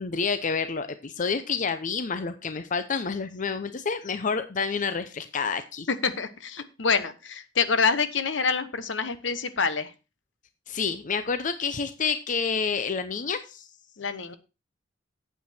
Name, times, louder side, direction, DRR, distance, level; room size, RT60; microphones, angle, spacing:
voice 1, 0.0-5.9 10.7-13.7, left 5 dB, 40° left, 11 dB, 0.6 m, -29 dB
voice 2, 5.9-9.9 14.0-14.3, left 5 dB, 70° left, 12 dB, 1.0 m, -26 dB
8.5 x 8.4 x 4.3 m, 0.29 s
head